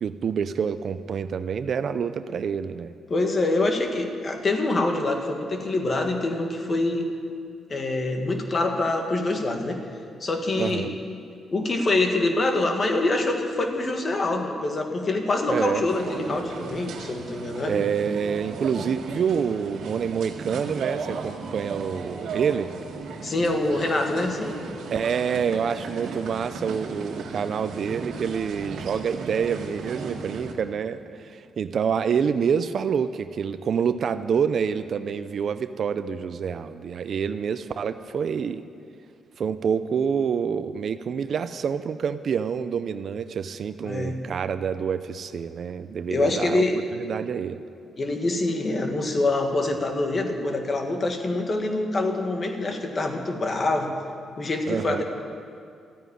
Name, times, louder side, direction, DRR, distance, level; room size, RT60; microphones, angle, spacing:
voice 1, 0.0-2.9 10.6-10.9 15.5-15.8 17.7-22.7 24.9-38.6 39.4-46.6 46.9-47.6 54.7-55.0, right 7 dB, 50° right, 11 dB, 0.5 m, -27 dB
voice 2, 3.1-7.1 7.7-9.8 10.2-10.8 11.5-17.8 23.2-24.6 43.8-44.1 46.1-46.8 48.0-53.9 54.4-55.0, left 2 dB, 35° left, 4 dB, 1.6 m, -25 dB
sound 1, 15.9-30.5, right 4 dB, 75° right, 1.8 m, -36 dB
13.5 x 9.2 x 10.0 m, 2.4 s
cardioid pair, 130°, 0 cm